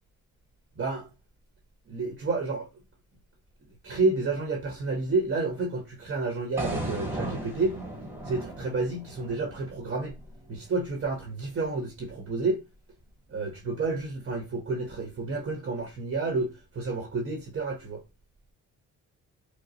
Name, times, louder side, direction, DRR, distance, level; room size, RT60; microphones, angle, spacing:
voice 1, 0.8-1.1 1.9-2.7 3.8-7.8 8.2-10.1 10.5-12.6 13.3-18.0, right 3 dB, 40° right, 1.0 m, -30 dB
sound 1, 6.6-10.7, right 1 dB, 10° right, 1.4 m, -36 dB
4.8 x 2.0 x 2.8 m
cardioid pair, 90°, 30 cm